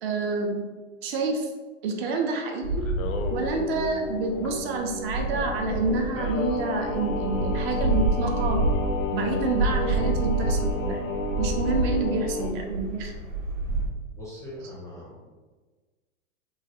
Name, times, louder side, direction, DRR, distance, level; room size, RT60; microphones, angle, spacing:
voice 1, 0.0-0.6 1.0-1.5 1.8-2.9 3.3-8.6 9.1-11.0 11.4-13.1, right 3 dB, 50° right, 3 dB, 0.6 m, -28 dB
sound 1, 2.6-13.9, right 3 dB, 75° right, 0.8 m, -29 dB
Singing, 2.8-12.5, left 4 dB, 90° left, 0.5 m, -32 dB
voice 2, 14.1-15.3, left 1 dB, 10° left, -6 dB, 0.4 m, -41 dB
3.1 x 2.3 x 2.6 m, 1.3 s
hypercardioid pair, 115°, 39 cm